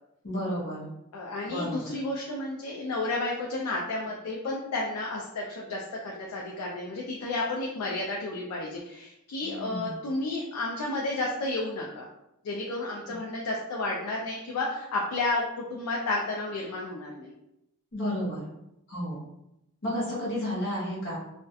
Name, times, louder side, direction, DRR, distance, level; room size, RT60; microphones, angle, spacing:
voice 1, 0.2-0.9 1.5-1.9 9.4-9.9 17.9-18.5 18.9-19.2 19.8-21.2, equal, 55° left, -7 dB, 0.7 m, -32 dB
voice 2, 1.1-12.1 12.4-17.3, left 2 dB, 80° left, -2 dB, 0.4 m, -32 dB
2.3 x 2.1 x 2.6 m, 0.86 s
head